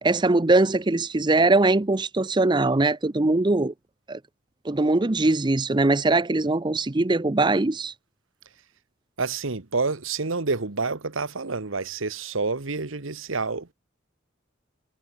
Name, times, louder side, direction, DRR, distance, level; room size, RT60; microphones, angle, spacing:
voice 1, 0.0-3.7 4.1-4.2 4.6-7.9, right 2 dB, 20° right, 0.6 m, -21 dB
voice 2, 9.2-13.7, right 4 dB, 80° right, 1.4 m, -28 dB
head